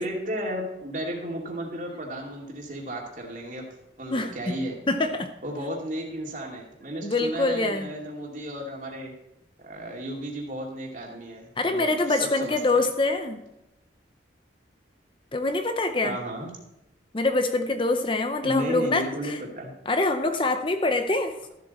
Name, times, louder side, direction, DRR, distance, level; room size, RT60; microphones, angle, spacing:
voice 1, 0.0-3.6 4.0-4.8 5.4-9.1 9.6-12.8 16.0-16.5 18.4-19.7, right 1 dB, 45° right, 0 dB, 2.5 m, -34 dB
voice 2, 4.1-4.6 4.9-5.3 7.0-7.9 11.6-13.4 15.3-16.2 17.1-19.4 19.9-21.4, left 2 dB, 30° left, 8 dB, 0.7 m, -25 dB
13.5 x 7.9 x 4.2 m, 0.90 s
head